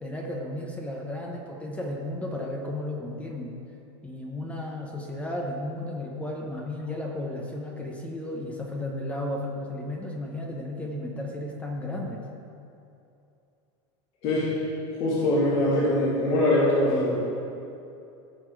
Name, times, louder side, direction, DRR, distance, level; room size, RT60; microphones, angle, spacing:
voice 1, 0.0-3.6 4.0-12.2, left 1 dB, 10° left, 0 dB, 0.8 m, -34 dB
voice 2, 15.0-17.2, left 1 dB, 40° left, -8 dB, 2.6 m, -23 dB
16.5 x 5.9 x 4.6 m, 2.7 s
supercardioid pair, 165°, 15 cm